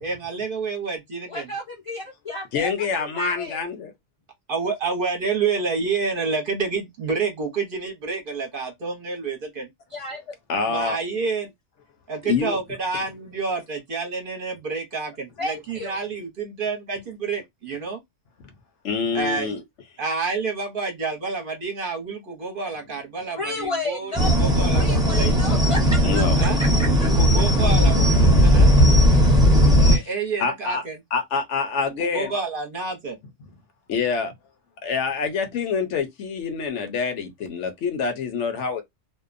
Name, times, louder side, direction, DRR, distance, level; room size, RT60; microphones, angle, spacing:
voice 1, 0.0-1.5 4.5-9.7 10.7-11.5 12.1-18.0 19.1-19.6 20.0-25.4 26.0-26.1 26.4-26.6 27.2-28.7 29.8-31.0 32.0-33.2, right 4 dB, 50° right, 0.8 m, -29 dB
voice 2, 1.3-2.7 3.0-3.6 9.9-10.3 15.4-16.0 23.4-24.5 24.7-27.1, left 1 dB, 45° left, 0.4 m, -32 dB
voice 3, 2.5-3.9 10.5-11.0 12.3-12.6 18.8-19.6 26.0-26.4 30.4-30.8 31.1-32.3 33.9-34.3 34.8-38.8, left 5 dB, 70° left, 0.9 m, -26 dB
sound 1, 24.2-30.0, equal, 5° right, 0.6 m, -17 dB
2.6 x 2.1 x 2.4 m
omnidirectional pair, 1.3 m